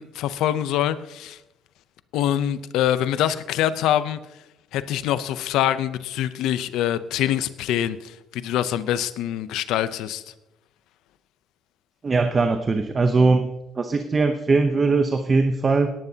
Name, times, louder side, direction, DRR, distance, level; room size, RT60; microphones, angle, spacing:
voice 1, 0.0-1.4 2.1-4.2 4.7-10.2, left 11 dB, 85° left, 13 dB, 0.6 m, -24 dB
voice 2, 12.0-13.5 13.8-15.9, right 3 dB, 25° right, 7 dB, 0.8 m, -20 dB
18.0 x 11.0 x 2.8 m, 0.93 s
cardioid pair, 140°, 0 cm